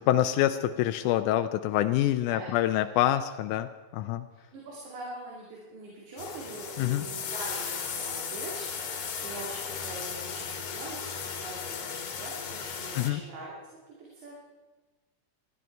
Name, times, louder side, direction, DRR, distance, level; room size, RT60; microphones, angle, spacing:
voice 1, 0.0-4.3 6.8-7.0 13.0-13.2, left 13 dB, 90° left, 9 dB, 2.1 m, -26 dB
voice 2, 2.3-2.6 3.1-3.2 4.3-13.6 14.0-14.4, right 2 dB, 75° right, -4 dB, 4.0 m, -43 dB
sound 1, 6.2-13.1, left 6 dB, 60° left, 2.7 m, -36 dB
19.5 x 14.0 x 4.6 m, 1.2 s
omnidirectional pair, 3.5 m